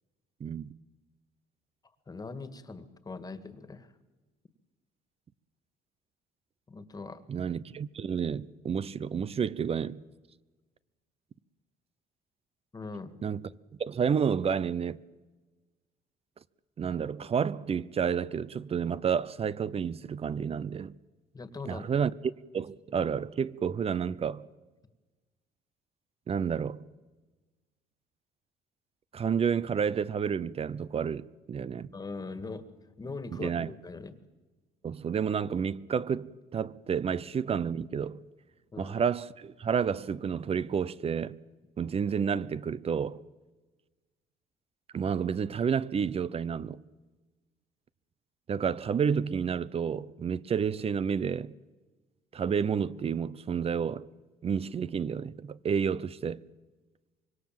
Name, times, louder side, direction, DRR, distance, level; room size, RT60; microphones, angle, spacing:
voice 1, 0.4-0.7 7.3-10.0 13.2-13.4 13.8-15.0 16.8-20.9 21.7-22.1 22.5-24.5 26.3-26.8 29.1-31.9 33.4-33.7 34.8-38.2 38.8-41.4 41.8-43.2 44.9-46.8 48.5-51.5 52.3-54.1 54.4-56.4, right 7 dB, 35° right, 0.8 m, -30 dB
voice 2, 2.1-3.9 6.7-7.2 12.7-13.2 21.3-21.9 31.9-32.7 33.0-34.2 38.7-39.0, left 3 dB, 20° left, 2.0 m, -41 dB
25.5 x 22.0 x 7.6 m
cardioid pair, 110°, 17 cm